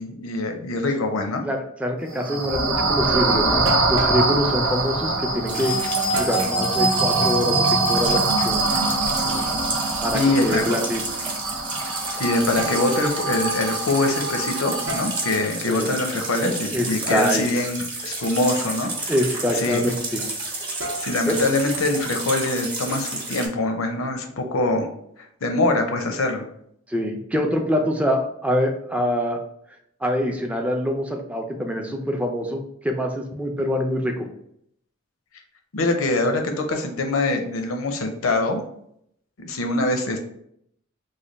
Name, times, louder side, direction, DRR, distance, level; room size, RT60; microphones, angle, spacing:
voice 1, 0.0-1.4 10.1-10.6 12.2-19.1 19.5-19.8 21.0-24.9 25.4-26.5 35.7-38.6 39.4-40.2, left 2 dB, 90° left, 4 dB, 0.6 m, -24 dB
voice 2, 1.4-8.6 10.0-11.0 15.7-15.9 16.7-17.4 19.1-20.2 21.3-21.4 26.9-29.4 30.0-34.3, equal, 5° right, 2 dB, 0.4 m, -25 dB
sound 1, 2.1-15.5, right 2 dB, 85° right, 1.0 m, -24 dB
sound 2, 3.7-4.2 6.1-6.6 8.3-9.7 10.3-10.8 12.6-12.8 14.9-15.2 17.1-17.3 20.8-21.3, equal, 70° right, 0.7 m, -32 dB
sound 3, 5.5-23.5, right 2 dB, 20° right, 0.9 m, -31 dB
3.2 x 2.2 x 3.9 m, 0.72 s
head